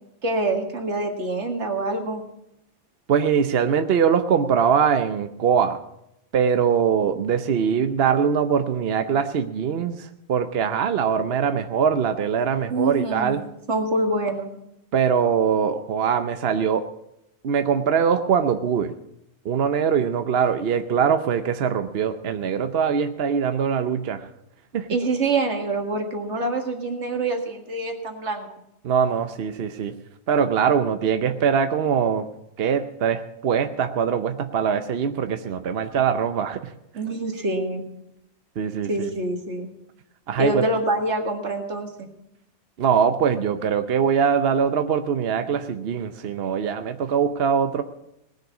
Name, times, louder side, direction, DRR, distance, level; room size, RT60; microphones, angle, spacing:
voice 1, 0.2-2.2 12.7-13.4 13.7-14.5 24.9-28.5 36.9-37.9 38.9-39.7 40.4-42.1, right 2 dB, 90° right, 3 dB, 2.2 m, -25 dB
voice 2, 3.1-5.8 6.3-13.4 14.9-16.8 17.4-18.9 19.4-24.3 24.7-24.9 28.8-29.9 30.3-32.3 32.6-36.7 38.6-39.1 40.3-40.6 42.8-47.8, right 7 dB, 65° right, 8 dB, 0.9 m, -22 dB
18.5 x 6.6 x 8.2 m, 0.83 s
omnidirectional pair, 1.1 m